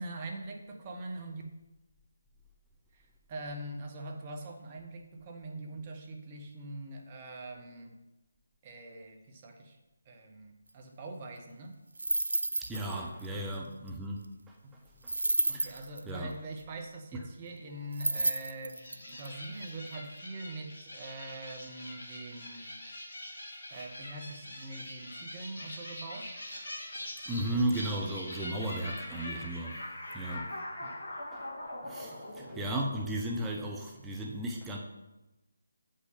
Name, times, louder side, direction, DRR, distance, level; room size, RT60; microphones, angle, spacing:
voice 1, 0.0-1.4 2.9-8.0 8.6-9.8 10.0-11.8 13.3-13.5 15.5-22.7 23.7-26.3 27.5-27.6 30.8-30.9 31.8-32.7, right 2 dB, 30° right, 3 dB, 1.2 m, -43 dB
sound 1, 12.0-12.9 13.2-13.3 15.1-16.0 17.9-19.3, right 2 dB, 70° right, 0.5 m, -30 dB
voice 2, 12.6-15.8 16.1-16.3 17.1-17.2 27.3-29.8 30.1-30.6 31.3-31.4 31.9-34.8, right 1 dB, 10° right, -1 dB, 0.7 m, -35 dB
sound 2, 18.7-33.4, left 1 dB, 50° left, 2.9 m, -43 dB
8.1 x 5.6 x 5.2 m, 1.0 s
figure-of-eight pair, 150°, 0 cm